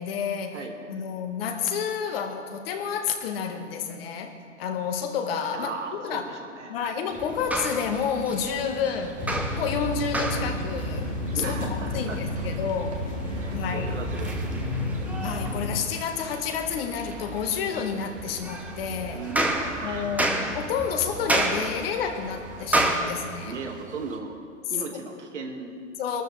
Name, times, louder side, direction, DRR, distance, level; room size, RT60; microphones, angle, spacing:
voice 1, 0.0-0.6 0.9-6.3 6.7-13.1 13.5-14.0 15.2-19.2 19.8-23.5 26.0-26.2, left 7 dB, 50° left, 5 dB, 1.8 m, -30 dB
voice 2, 5.5-6.9 11.3-12.2 12.6-12.7 13.3-14.7 19.1-20.2 23.4-24.4 24.7-25.8, right 4 dB, 70° right, 1 dB, 2.3 m, -37 dB
sound 1, 7.1-24.2, right 3 dB, 20° right, 1.5 m, -43 dB
sound 2, 7.2-23.0, right 1 dB, 5° right, 1.2 m, -32 dB
sound 3, 9.2-15.8, left 1 dB, 20° left, 2.6 m, -31 dB
23.5 x 12.5 x 3.4 m, 2.2 s
figure-of-eight pair, 100°, 37 cm